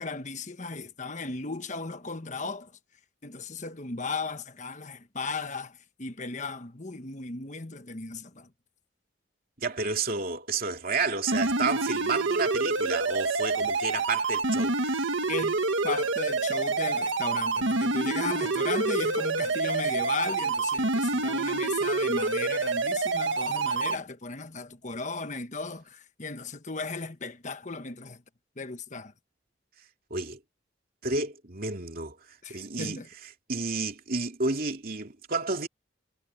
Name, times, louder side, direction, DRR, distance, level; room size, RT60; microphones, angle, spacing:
voice 1, 0.0-2.7 3.2-8.5 15.3-15.6 15.8-28.2 28.6-29.1 32.4-33.1, left 3 dB, 40° left, 1.3 m, -36 dB
voice 2, 9.6-15.1 30.1-30.4 31.0-32.2 32.5-33.0 33.5-35.7, right 4 dB, 50° right, 2.8 m, -31 dB
sound 1, 11.3-23.9, right 3 dB, 85° right, 1.7 m, -27 dB
head